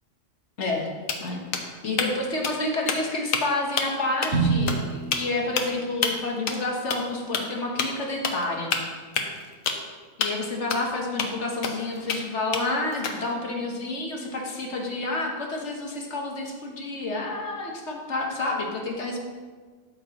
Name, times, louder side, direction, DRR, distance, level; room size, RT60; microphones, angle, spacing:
voice 1, 0.6-0.9 1.2-8.7 10.2-19.2, left 2 dB, 60° left, 0 dB, 1.4 m, -29 dB
sound 1, 0.7-0.8 1.1-2.1 2.4-2.6 2.9-3.4 3.8-4.0 4.2-4.3 4.7-4.8 5.1-5.2 5.6-5.7 6.0-6.1 6.5-6.6 6.9-7.0 7.3-7.4 7.8-7.9 8.2-8.4 8.7-9.8 10.2-10.3 10.7-10.8 11.2-11.3 11.6-12.2 12.5-13.3, left 6 dB, 85° left, 1.3 m, -27 dB
Drum, 4.3-6.3, right 4 dB, 65° right, 2.8 m, -28 dB
12.5 x 6.9 x 2.9 m, 1.5 s
omnidirectional pair, 1.4 m